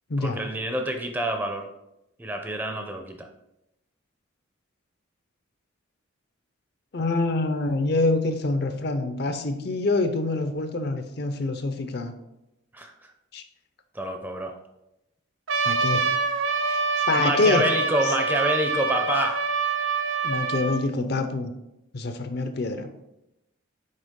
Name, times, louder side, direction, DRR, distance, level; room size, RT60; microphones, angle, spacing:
voice 1, 0.2-1.7 2.2-3.3 12.7-13.1 13.9-14.5 17.2-19.4, right 1 dB, 10° right, 4 dB, 0.5 m, -27 dB
voice 2, 6.9-12.1 13.3-13.4 15.6-16.0 16.6-16.8 17.1-17.6 20.2-21.5 21.9-22.9, left 2 dB, 50° left, 8 dB, 0.6 m, -26 dB
Trumpet, 15.5-20.8, right 4 dB, 65° right, 0.7 m, -25 dB
6.4 x 4.5 x 3.6 m, 0.88 s
head